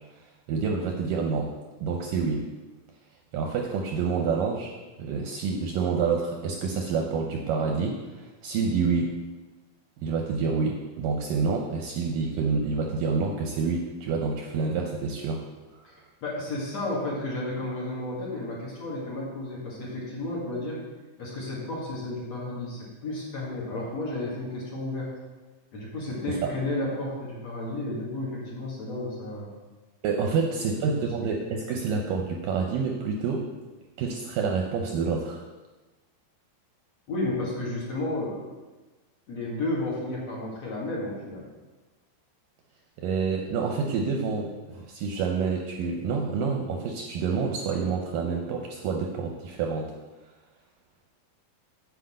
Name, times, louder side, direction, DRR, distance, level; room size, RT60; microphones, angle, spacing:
voice 1, 0.5-1.5 1.8-2.5 3.3-9.2 10.0-15.4 26.3-26.5 30.0-33.5 34.0-35.4 43.0-49.9, right 5 dB, 75° right, 2 dB, 2.1 m, -28 dB
voice 2, 16.2-20.8 21.2-25.1 25.7-29.5 30.5-30.9 37.1-38.5 39.3-41.4, left 2 dB, 50° left, -5 dB, 2.7 m, -32 dB
8.3 x 5.2 x 7.6 m, 1.2 s
omnidirectional pair, 4.6 m